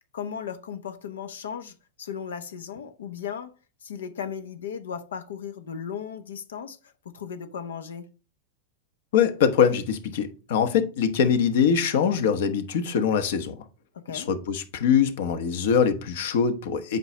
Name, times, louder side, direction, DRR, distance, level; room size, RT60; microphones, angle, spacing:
voice 1, 0.1-3.5 3.8-8.1 14.0-14.3, left 7 dB, 90° left, 0.9 m, -36 dB
voice 2, 9.1-13.6 14.1-17.0, left 7 dB, 70° left, 1.2 m, -23 dB
8.0 x 5.3 x 3.3 m
hypercardioid pair, 120°, 0 cm